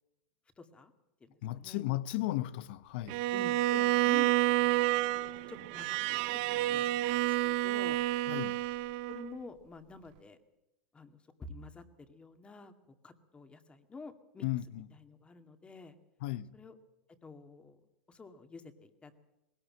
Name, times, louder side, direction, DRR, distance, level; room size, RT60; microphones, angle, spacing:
voice 1, 0.6-0.9 1.2-2.0 3.3-4.3 4.7-4.9 5.5-8.0 9.1-10.4 10.9-12.7 13.0-14.5 14.9-15.9 16.5-16.8 17.2-17.8 18.1-19.2, left 3 dB, 20° left, 2.1 m, -50 dB
voice 2, 1.4-3.2 8.3-8.6 14.4-14.9 16.2-16.6, left 16 dB, 70° left, 0.9 m, -35 dB
Bowed string instrument, 3.1-9.3, right 17 dB, 60° right, 0.7 m, -29 dB
20.0 x 18.0 x 7.6 m
hypercardioid pair, 110°, 6 cm